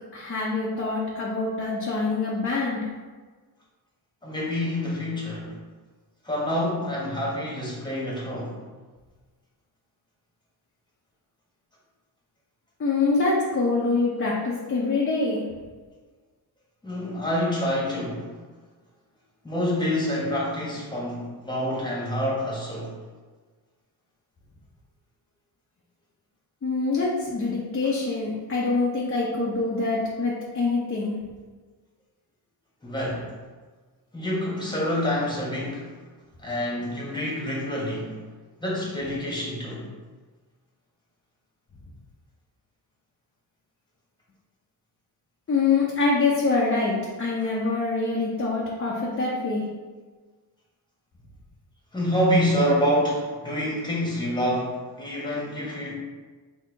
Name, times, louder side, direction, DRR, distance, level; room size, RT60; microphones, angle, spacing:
voice 1, 0.1-2.8 12.8-15.4 26.6-31.1 45.5-49.6, left 3 dB, 35° left, -5 dB, 0.8 m, -25 dB
voice 2, 4.2-5.5 6.2-8.6 16.8-18.3 19.4-23.0 32.8-33.3 34.1-35.9 36.4-38.2 38.6-39.9 51.9-55.9, equal, 10° left, -5 dB, 1.4 m, -27 dB
4.3 x 2.9 x 4.0 m, 1.4 s
cardioid pair, 95°, 40 cm